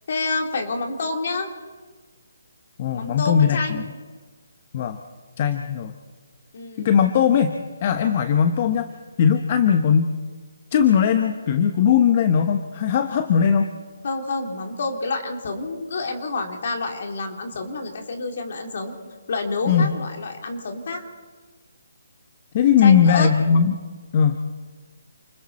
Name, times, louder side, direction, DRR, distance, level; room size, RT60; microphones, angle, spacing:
voice 1, 0.1-1.5 2.9-3.9 6.5-6.9 14.0-18.9 19.3-21.0 22.8-23.3, left 3 dB, 50° left, 3 dB, 3.4 m, -28 dB
voice 2, 2.8-3.8 4.7-5.0 5.4-5.9 6.8-8.9 9.2-10.1 10.7-13.7 19.7-19.9 22.5-23.7 24.1-24.4, left 7 dB, 35° left, 8 dB, 1.0 m, -19 dB
29.0 x 21.0 x 4.3 m, 1.4 s
hypercardioid pair, 160°, 0 cm